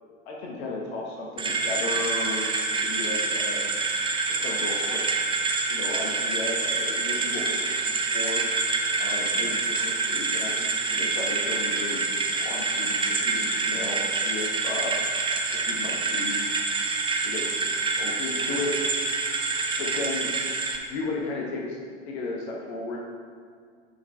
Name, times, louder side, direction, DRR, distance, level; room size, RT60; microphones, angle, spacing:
voice 1, 0.3-3.6 4.3-5.0 5.7-8.4 9.0-14.9 15.5-16.4 17.2-17.4 18.0-18.8 19.8-21.8 22.1-23.0, left 3 dB, 55° left, -2 dB, 1.3 m, -34 dB
sound 1, 1.4-20.8, right 3 dB, 15° right, 0.6 m, -27 dB
7.7 x 5.8 x 3.4 m, 2.1 s
figure-of-eight pair, 80°, 38 cm